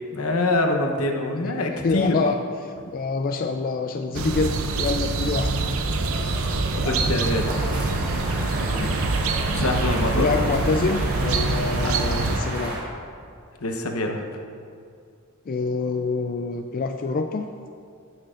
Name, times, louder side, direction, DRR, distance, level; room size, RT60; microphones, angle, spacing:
voice 1, 0.1-2.2 6.7-7.5 9.5-10.3 11.8-11.9 13.6-14.2, left 2 dB, 75° left, 4 dB, 0.9 m, -25 dB
voice 2, 1.8-5.5 8.7-9.1 10.2-12.8 15.5-17.5, left 4 dB, 40° left, 5 dB, 0.3 m, -26 dB
sound 1, 4.1-12.4, right 3 dB, 70° right, 0.6 m, -25 dB
sound 2, 6.0-11.1, left 2 dB, 10° left, 0.9 m, -41 dB
sound 3, 7.2-12.8, right 1 dB, 45° right, 1.7 m, -32 dB
17.0 x 6.5 x 2.5 m, 2.4 s
head